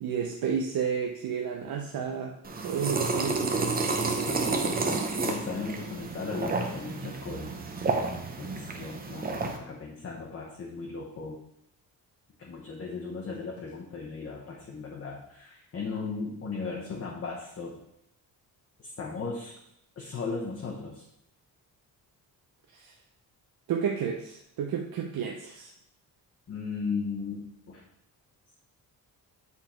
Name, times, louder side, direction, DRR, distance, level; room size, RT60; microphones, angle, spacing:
voice 1, 0.0-2.4 2.6-3.8 22.7-22.9 23.7-25.7, right 7 dB, 70° right, 2 dB, 0.7 m, -31 dB
sound 1, 2.4-9.6, right 3 dB, 25° right, 0.7 m, -30 dB
voice 2, 4.3-7.5 7.9-8.1 8.4-11.4 12.4-17.8 18.8-19.5 20.0-21.0 26.5-27.8, left 4 dB, 35° left, -3 dB, 1.0 m, -37 dB
7.2 x 4.0 x 4.3 m, 0.78 s
cardioid pair, 140°, 37 cm